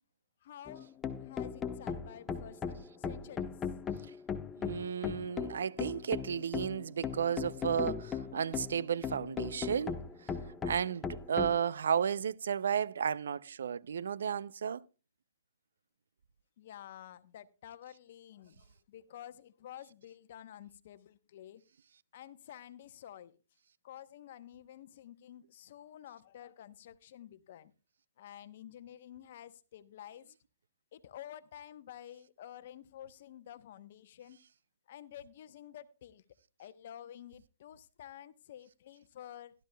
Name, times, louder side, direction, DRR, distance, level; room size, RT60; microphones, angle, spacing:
voice 1, 0.4-3.5 16.6-21.6 22.1-23.4 23.8-27.7 28.2-30.3 30.9-34.4 34.9-36.2 36.6-39.5, left 11 dB, 55° left, 0.8 m, -51 dB
sound 1, 0.7-11.6, left 6 dB, 15° left, 0.7 m, -38 dB
voice 2, 4.6-10.3 10.6-14.8, right 8 dB, 75° right, 0.5 m, -33 dB
16.5 x 12.0 x 2.2 m
hypercardioid pair, 140°, 0 cm